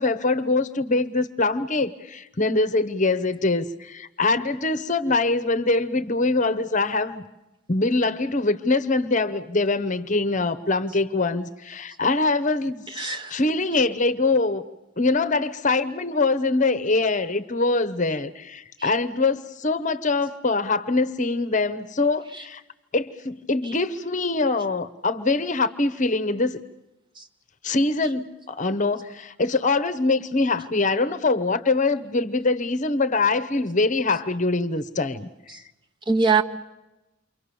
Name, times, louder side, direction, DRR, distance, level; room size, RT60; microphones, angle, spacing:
voice 1, 0.0-7.2 7.7-14.6 15.0-22.6 22.9-26.6 27.6-35.3, left 3 dB, 40° left, 12 dB, 1.0 m, -23 dB
voice 2, 13.0-13.4 18.8-18.9 27.2-27.3 36.1-36.4, right 4 dB, 25° right, 4 dB, 1.8 m, -22 dB
29.0 x 24.5 x 7.0 m, 0.98 s
head